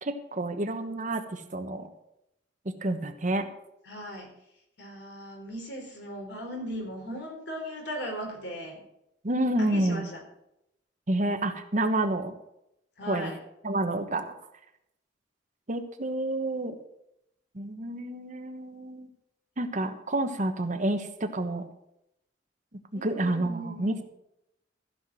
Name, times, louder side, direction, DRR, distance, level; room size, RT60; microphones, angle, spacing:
voice 1, 0.0-1.9 2.8-3.5 9.2-10.1 11.1-12.3 13.1-13.3 13.6-14.3 15.7-16.7 17.5-19.1 19.6-21.6 22.9-24.0, right 1 dB, 45° right, 7 dB, 1.2 m, -29 dB
voice 2, 3.8-4.3 4.8-8.8 9.6-10.2 13.0-13.4 22.9-24.0, equal, 70° left, 1 dB, 4.0 m, -38 dB
14.5 x 5.9 x 7.6 m, 0.82 s
head